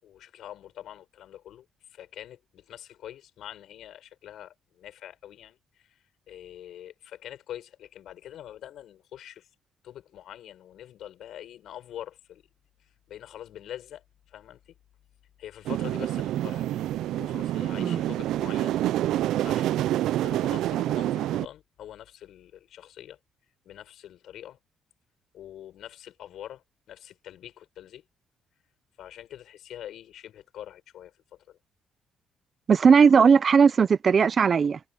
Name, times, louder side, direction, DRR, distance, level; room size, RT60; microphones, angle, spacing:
voice 1, 0.0-9.5 9.8-12.4 12.8-14.7 15.4-23.2 23.6-24.6 25.3-28.0 29.0-31.6, left 11 dB, 75° left, 6.9 m, -45 dB
sound 1, 15.7-21.5, right 13 dB, 85° right, 0.4 m, -27 dB
voice 2, 32.7-34.8, right 6 dB, 45° right, 0.7 m, -18 dB
cardioid pair, 90°, 0 cm